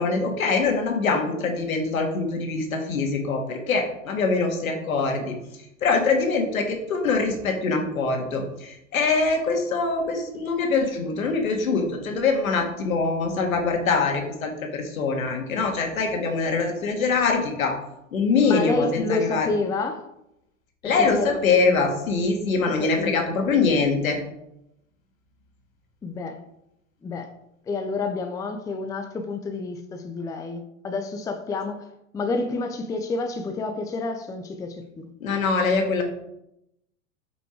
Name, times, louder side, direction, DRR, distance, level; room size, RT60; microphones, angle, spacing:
voice 1, 0.0-5.3 5.8-17.7 18.1-19.5 20.8-24.2 35.2-36.0, left 4 dB, 85° left, 3 dB, 2.1 m, -23 dB
voice 2, 18.4-20.1 21.2-21.4 22.8-23.2 26.0-26.4 27.0-27.3 27.7-31.8 32.1-35.1, left 3 dB, 10° left, 7 dB, 0.5 m, -29 dB
7.7 x 5.4 x 4.6 m, 0.83 s
hypercardioid pair, 125°, 41 cm